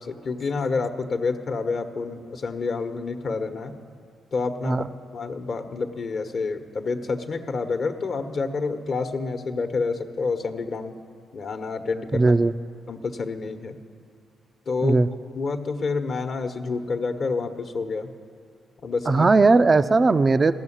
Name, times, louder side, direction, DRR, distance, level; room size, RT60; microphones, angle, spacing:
voice 1, 0.0-3.8 4.3-4.8 5.1-11.0 11.3-12.3 12.9-13.8 14.7-15.0 15.3-18.1 18.8-19.3, left 4 dB, 55° left, 7 dB, 1.1 m, -28 dB
voice 2, 12.1-12.5 14.8-15.1 19.1-20.5, right 3 dB, 35° right, 12 dB, 0.5 m, -18 dB
15.5 x 7.0 x 9.9 m, 2.2 s
hypercardioid pair, 40°, 0 cm